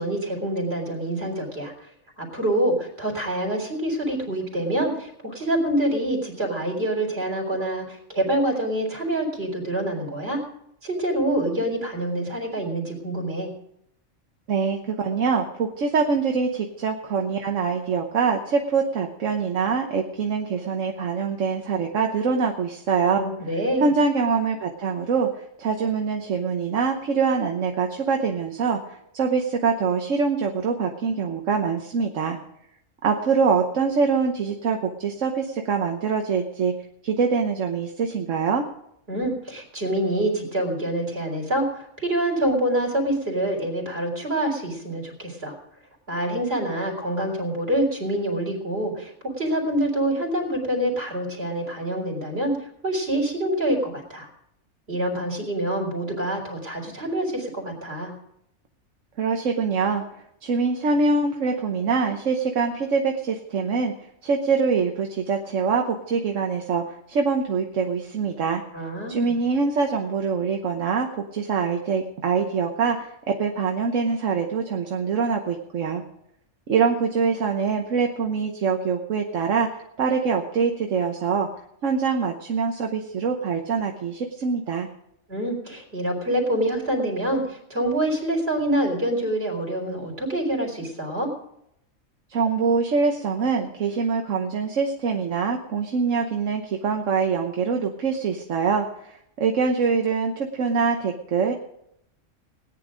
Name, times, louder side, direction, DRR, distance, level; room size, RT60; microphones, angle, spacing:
voice 1, 0.0-1.9 2.2-10.4 10.8-13.5 23.1-23.9 39.1-45.6 46.1-54.3 54.9-58.1 68.7-69.4 85.3-91.3, right 1 dB, 50° right, 0 dB, 4.0 m, -26 dB
voice 2, 14.5-23.2 23.8-32.4 33.0-36.7 37.0-38.7 59.2-60.0 60.4-63.9 64.2-68.6 69.1-76.0 76.7-81.5 81.8-84.9 92.3-101.5, right 5 dB, 75° right, 3 dB, 1.4 m, -24 dB
18.0 x 9.9 x 5.1 m, 0.76 s
omnidirectional pair, 1.3 m